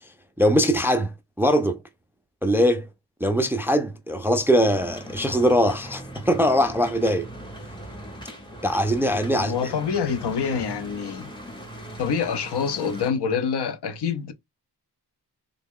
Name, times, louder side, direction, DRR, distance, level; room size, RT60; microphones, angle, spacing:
voice 1, 0.4-1.8 2.4-2.9 3.2-7.3 8.6-9.7, equal, 5° right, 0.3 m, -21 dB
sound 1, 4.7-13.1, right 1 dB, 10° left, 1.0 m, -40 dB
voice 2, 9.3-11.3 12.0-14.3, left 6 dB, 75° left, 0.7 m, -26 dB
3.5 x 2.3 x 3.5 m
wide cardioid pair, 175°, 40 cm